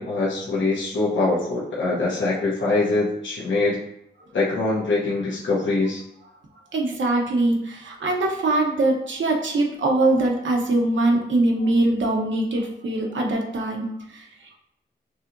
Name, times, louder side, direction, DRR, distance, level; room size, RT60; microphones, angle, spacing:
voice 1, 0.0-3.8 4.3-6.0, left 3 dB, 80° left, -6 dB, 1.1 m, -23 dB
voice 2, 6.7-14.5, right 2 dB, 90° right, 0 dB, 0.9 m, -22 dB
6.1 x 2.9 x 2.6 m, 0.78 s
wide cardioid pair, 95°, 19 cm